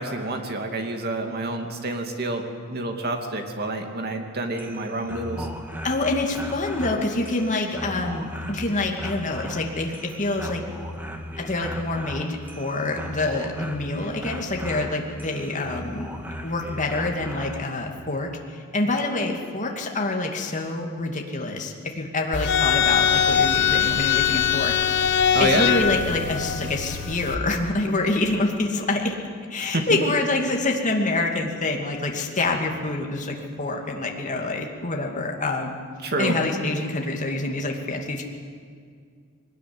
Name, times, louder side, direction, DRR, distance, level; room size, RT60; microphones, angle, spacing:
voice 1, 0.0-2.4 2.7-5.5 25.3-25.7 29.6-29.9 36.0-36.4, right 2 dB, 45° right, 4 dB, 2.7 m, -28 dB
sound 1, 4.4-17.7, equal, 10° right, 1.9 m, -37 dB
voice 2, 5.8-10.6 11.4-16.1 16.4-24.8 25.4-29.2 29.5-35.7 36.2-38.2, left 2 dB, 35° left, 1 dB, 2.6 m, -26 dB
sound 2, 22.3-27.4, left 8 dB, 55° left, 1.2 m, -22 dB
22.0 x 19.5 x 9.7 m, 2.1 s
head